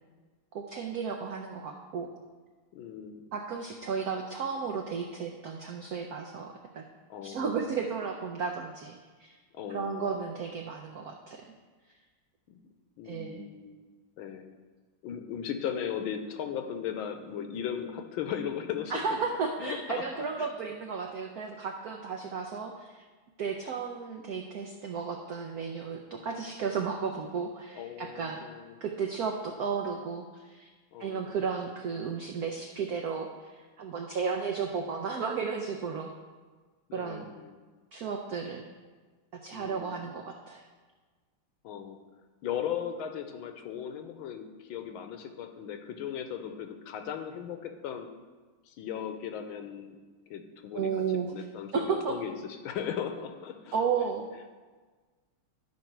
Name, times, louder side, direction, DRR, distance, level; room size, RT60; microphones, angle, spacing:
voice 1, 0.5-2.1 3.3-6.8 7.2-9.4 9.7-11.5 13.0-13.5 18.9-23.0 23.4-28.4 28.8-30.7 31.0-36.1 36.9-37.3 37.9-38.6 39.4-40.6 50.7-51.3 51.7-52.2 53.7-54.3, right 5 dB, 85° right, 3 dB, 0.8 m, -33 dB
voice 2, 2.7-3.2 7.1-7.7 9.5-10.1 12.5-12.6 13.0-13.8 14.2-14.5 15.0-19.2 19.6-20.5 27.7-28.8 30.9-31.3 36.9-37.6 39.5-40.1 41.6-42.0 42.4-48.1 48.7-50.0 50.3-50.9 51.3-53.7, left 8 dB, 75° left, 6 dB, 1.4 m, -37 dB
12.0 x 5.3 x 4.5 m, 1.4 s
omnidirectional pair, 2.4 m